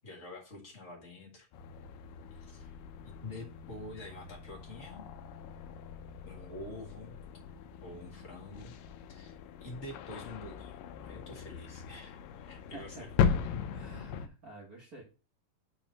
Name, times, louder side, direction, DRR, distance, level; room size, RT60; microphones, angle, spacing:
voice 1, 0.0-1.5 2.4-2.7 3.0-5.0 6.2-7.2 7.8-8.7 9.1-10.8 11.0-12.2 12.4-13.1, left 2 dB, 30° left, -2 dB, 1.5 m, -47 dB
sound 1, 1.5-14.3, left 7 dB, 80° left, 2.3 m, -38 dB
voice 2, 12.7-13.3 13.7-15.0, right 2 dB, 70° right, -1 dB, 0.8 m, -50 dB
5.5 x 4.6 x 5.2 m, 0.33 s
omnidirectional pair, 4.0 m